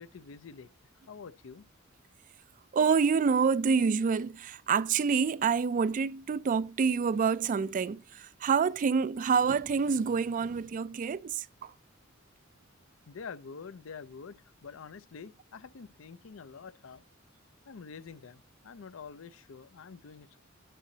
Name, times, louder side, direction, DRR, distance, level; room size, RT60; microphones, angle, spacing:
voice 1, 0.0-1.7 13.1-17.0 17.7-20.4, left 5 dB, 70° left, 0.5 m, -47 dB
voice 2, 2.7-11.7, right 5 dB, 40° right, 0.3 m, -27 dB
10.0 x 7.6 x 2.7 m
head